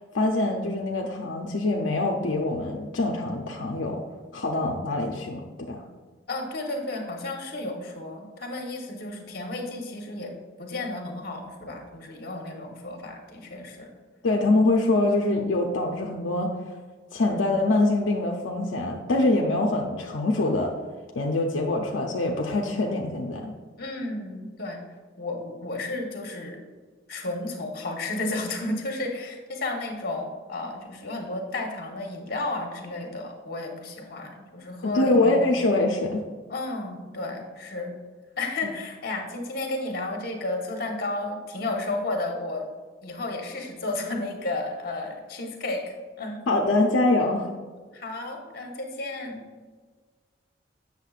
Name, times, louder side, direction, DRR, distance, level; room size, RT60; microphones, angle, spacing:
voice 1, 0.1-4.0 4.3-5.8 14.2-16.5 17.1-20.7 21.2-23.5 34.8-36.2 46.5-47.5, left 2 dB, 80° left, 1 dB, 0.6 m, -24 dB
voice 2, 6.3-10.3 10.6-13.9 23.8-24.8 25.2-26.6 27.1-35.5 36.5-37.9 38.4-42.6 43.0-46.4 47.9-49.4, left 2 dB, 50° left, 2 dB, 1.1 m, -32 dB
8.3 x 6.5 x 2.4 m, 1.4 s
head